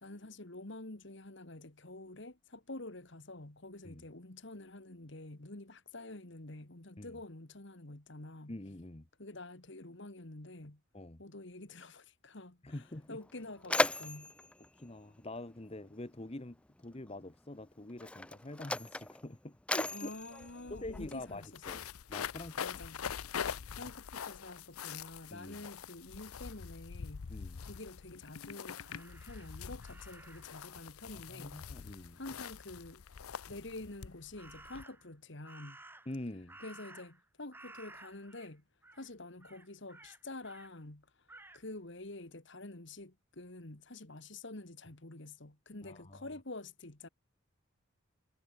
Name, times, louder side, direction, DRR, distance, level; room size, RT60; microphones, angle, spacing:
voice 1, 0.0-8.6 9.2-10.8 11.2-14.3 19.9-21.8 22.6-23.0 23.8-27.3 27.6-31.6 32.2-33.0 33.5-35.8 36.6-38.6 38.9-41.3 41.5-47.1, left 2 dB, 55° left, 1.9 m, -48 dB
voice 2, 8.5-9.1 10.9-11.2 12.6-13.2 14.8-20.1 20.7-21.8 22.1-22.7 25.3-25.7 27.3-27.6 31.1-32.2 36.1-36.6 45.8-46.3, left 1 dB, 30° left, 1.0 m, -45 dB
Mechanisms, 12.7-12.8 13.2-15.9 16.9-17.1 17.9-21.5, left 2 dB, 5° left, 0.3 m, -37 dB
sound 1, 20.1-20.2 20.4-34.8, left 7 dB, 90° left, 0.6 m, -44 dB
Crow, 28.9-30.6 34.4-35.1 35.5-37.3 37.5-38.5 38.8-39.1 39.4-40.7 41.3-41.6, right 2 dB, 10° right, 2.1 m, -55 dB
head